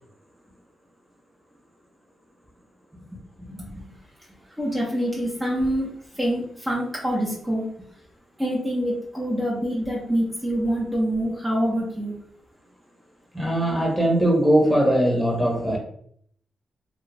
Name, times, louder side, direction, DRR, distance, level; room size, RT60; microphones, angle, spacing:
voice 1, 3.4-3.8 4.6-5.9 6.1-7.9 8.4-12.2, equal, 15° right, -5 dB, 0.9 m, -26 dB
voice 2, 13.3-15.8, right 1 dB, 5° left, -1 dB, 1.1 m, -20 dB
2.5 x 2.3 x 3.3 m, 0.63 s
cardioid pair, 65°, 0 cm